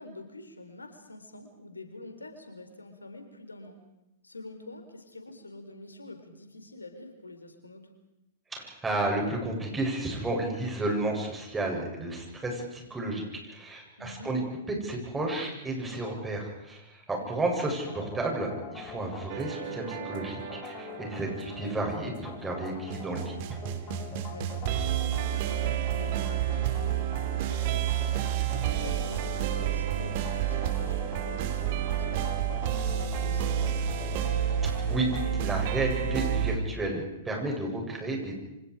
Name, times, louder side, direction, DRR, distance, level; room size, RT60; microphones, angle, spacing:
voice 1, 0.0-3.8 4.2-7.9 14.0-14.3 17.1-17.3 24.3-28.1 28.5-34.3, left 2 dB, 90° left, 6 dB, 4.0 m, -46 dB
voice 2, 8.5-14.4 14.7-23.6 34.6-35.1 35.4-38.3, right 2 dB, 10° right, 0 dB, 7.8 m, -32 dB
sound 1, 17.6-35.5, left 9 dB, 30° left, 2.4 m, -45 dB
sound 2, 19.3-36.6, right 10 dB, 50° right, 2.7 m, -30 dB
29.0 x 26.0 x 5.0 m, 0.91 s
figure-of-eight pair, 110°, 0 cm